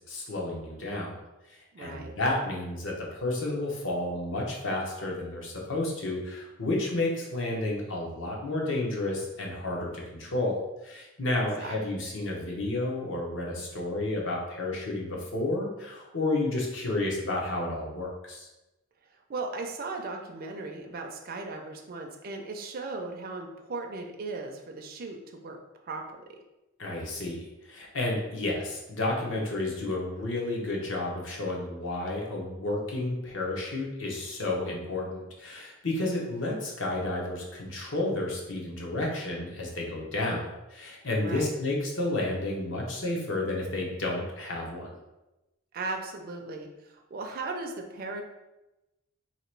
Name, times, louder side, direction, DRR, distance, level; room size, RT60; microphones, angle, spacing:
voice 1, 0.1-1.2 1.5-10.6 10.8-18.5 26.8-44.9, left 2 dB, 55° left, -1 dB, 0.8 m, -31 dB
voice 2, 1.7-2.1 11.6-11.8 19.3-25.6 25.8-26.2 41.2-41.5 45.7-48.2, right 3 dB, 40° right, 3 dB, 0.4 m, -37 dB
2.9 x 2.9 x 4.5 m, 1.0 s
head